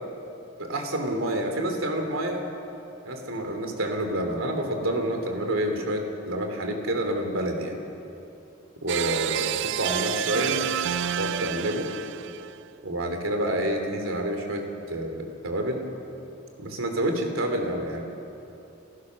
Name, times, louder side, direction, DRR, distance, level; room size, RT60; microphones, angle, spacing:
voice 1, 0.6-2.4 3.0-7.8 8.8-9.5 9.8-10.6 11.2-11.9 12.8-14.6 14.9-15.9 16.6-18.0, right 1 dB, 80° right, 4 dB, 3.1 m, -28 dB
sound 1, 8.9-12.6, right 10 dB, 60° right, 0.4 m, -29 dB
30.0 x 15.0 x 6.4 m, 2.9 s
head